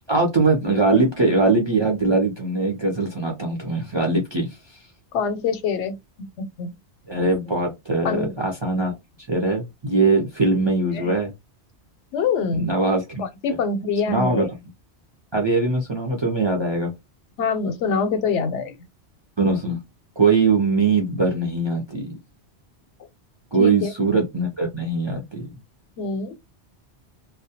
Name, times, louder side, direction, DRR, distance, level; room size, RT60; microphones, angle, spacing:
voice 1, 0.1-4.8 7.1-8.9 9.3-11.3 12.5-13.2 14.1-14.5 15.3-16.9 19.4-19.8 20.2-22.2 23.5-25.5, right 3 dB, 40° right, 0.4 m, -21 dB
voice 2, 5.1-5.9 6.4-6.7 8.0-8.3 10.5-10.6 10.9-11.1 12.1-12.7 13.2-14.5 17.4-18.8 23.6-23.9 26.0-26.4, left 5 dB, 85° left, 0.9 m, -25 dB
2.2 x 2.0 x 2.7 m
omnidirectional pair, 1.2 m